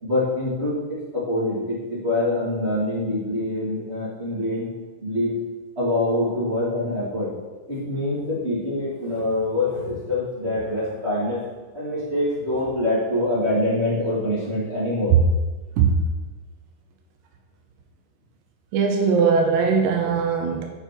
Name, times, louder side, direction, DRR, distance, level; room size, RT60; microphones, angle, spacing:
voice 1, 0.0-4.7 5.0-5.3 5.7-7.3 7.7-11.4 11.7-15.1, left 1 dB, 25° right, -9 dB, 1.2 m, -25 dB
voice 2, 18.7-20.6, right 5 dB, 75° right, 2 dB, 2.8 m, -20 dB
7.4 x 7.0 x 4.6 m, 1.3 s
omnidirectional pair, 5.9 m